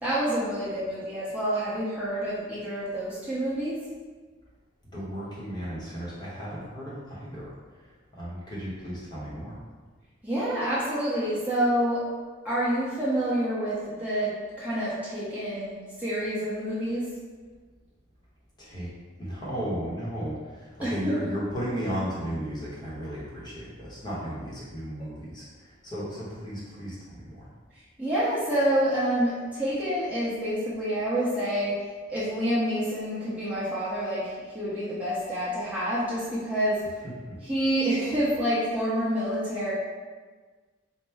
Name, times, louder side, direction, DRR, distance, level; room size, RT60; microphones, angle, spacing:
voice 1, 0.0-3.8 10.2-12.0 12.4-14.3 14.6-17.0 20.8-20.9 28.0-31.7 32.1-36.8 37.5-39.7, right 1 dB, 5° right, -10 dB, 0.7 m, -27 dB
voice 2, 4.8-9.6 18.6-18.9 19.2-27.5 37.0-37.4, equal, 20° left, -7 dB, 0.8 m, -35 dB
4.3 x 2.0 x 3.4 m, 1.4 s
head